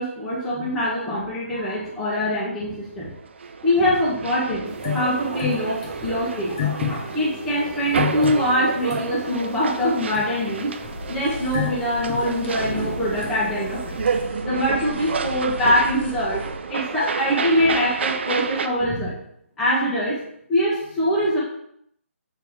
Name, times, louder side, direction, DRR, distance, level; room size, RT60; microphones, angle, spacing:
voice 1, 0.0-3.1 3.6-14.0 14.4-19.1 19.6-20.2 20.5-21.4, equal, 5° left, -9 dB, 1.3 m, -23 dB
sound 1, 3.1-18.7, right 5 dB, 55° right, 0.5 m, -30 dB
sound 2, 4.7-14.3, left 9 dB, 25° left, 0.6 m, -33 dB
sound 3, 10.8-16.6, left 2 dB, 50° left, 1.2 m, -37 dB
7.1 x 3.3 x 4.8 m, 0.72 s
hypercardioid pair, 160°, 8 cm